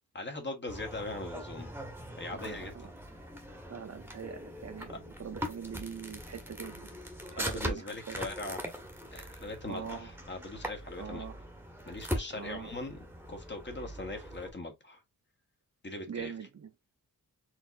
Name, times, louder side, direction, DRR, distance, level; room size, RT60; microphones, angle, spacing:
voice 1, 0.1-1.7 2.2-2.8 7.4-8.6 9.1-11.2 11.9-13.0 13.3-15.0 15.8-16.3, left 2 dB, 30° left, 1.3 m, -40 dB
sound 1, 0.7-14.5, equal, 5° right, 1.2 m, -41 dB
voice 2, 2.3-2.9 3.7-6.9 7.3-8.2 9.6-10.1 11.0-11.4 12.3-12.7 16.1-16.7, right 7 dB, 45° right, 0.8 m, -43 dB
4.5 x 3.6 x 2.6 m
wide cardioid pair, 155°, 36 cm